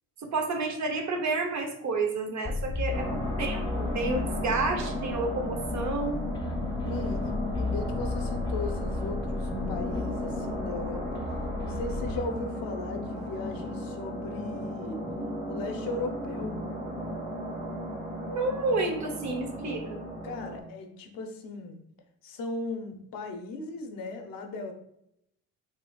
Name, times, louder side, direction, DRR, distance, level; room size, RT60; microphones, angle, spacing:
voice 1, 0.2-6.2 18.3-20.0, right 3 dB, 50° right, 4 dB, 0.7 m, -30 dB
sound 1, 2.4-12.2, left 2 dB, 15° left, 0.5 m, -34 dB
voice 2, 2.9-3.2 6.9-11.2 11.6-15.0 15.5-16.6 20.2-21.8 22.2-24.7, left 3 dB, 70° left, 5 dB, 0.7 m, -37 dB
sound 2, 2.9-20.6, left 1 dB, 20° right, 1.3 m, -35 dB
4.1 x 2.7 x 2.3 m, 0.75 s
supercardioid pair, 80°, 36 cm